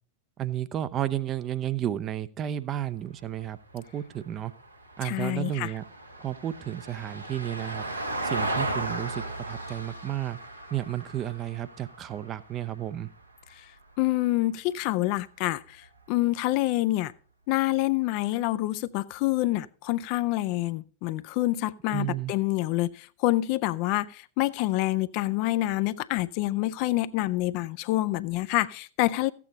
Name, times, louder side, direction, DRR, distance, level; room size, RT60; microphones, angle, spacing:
voice 1, 0.4-4.5 5.0-5.8 6.2-7.8 8.2-10.4 10.7-13.1 21.9-22.3, right 11 dB, 30° right, 0.5 m, -32 dB
Vehicle, 3.1-13.5 15.8-15.9, right 2 dB, 85° right, 1.3 m, -36 dB
voice 2, 5.0-5.7 13.5-13.7 14.0-17.1 17.5-29.3, left 17 dB, 45° left, 0.4 m, -27 dB
14.0 x 8.4 x 3.9 m
figure-of-eight pair, 90°, 0 cm